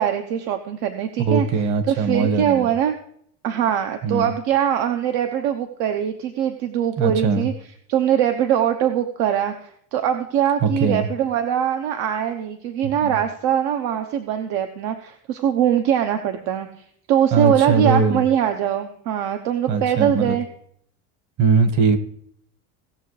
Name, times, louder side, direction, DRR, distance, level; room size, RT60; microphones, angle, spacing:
voice 1, 0.0-3.0 3.4-7.5 7.9-16.7 17.1-20.4, right 9 dB, 60° right, 6 dB, 1.0 m, -22 dB
voice 2, 1.2-2.7 4.0-4.3 7.0-7.5 10.6-11.1 12.8-13.2 17.3-18.2 19.7-20.4 21.4-22.0, right 4 dB, 45° right, 10 dB, 1.5 m, -20 dB
18.5 x 6.8 x 3.2 m, 0.67 s
cardioid pair, 145°, 44 cm